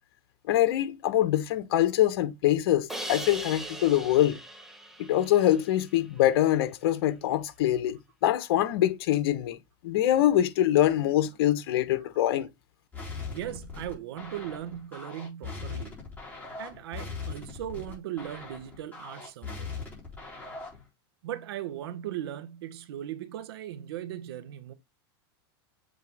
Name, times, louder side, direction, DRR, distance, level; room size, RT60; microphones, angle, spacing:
voice 1, 0.5-4.4 5.0-9.6 9.8-12.5, left 12 dB, 70° left, 1.1 m, -24 dB
Crash cymbal, 2.9-6.0, right 1 dB, 5° right, 1.2 m, -40 dB
sound 1, 12.9-20.9, left 4 dB, 15° left, 3.7 m, -40 dB
voice 2, 13.2-16.0 16.6-19.7 21.2-24.7, right 11 dB, 75° right, 1.0 m, -38 dB
7.4 x 3.6 x 3.5 m
supercardioid pair, 135°, 13 cm